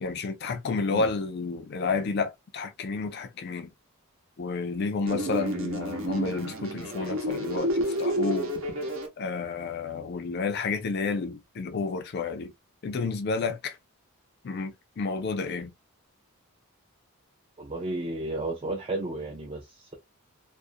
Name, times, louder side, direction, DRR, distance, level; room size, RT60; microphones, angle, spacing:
voice 1, 0.0-3.7 4.4-8.5 9.2-12.5 12.8-13.8 14.4-15.7, left 4 dB, 50° left, 0.4 m, -30 dB
sound 1, 5.1-9.1, right 1 dB, 65° right, 0.7 m, -30 dB
voice 2, 17.6-20.0, right 2 dB, 25° right, 0.4 m, -33 dB
2.5 x 2.0 x 2.5 m
head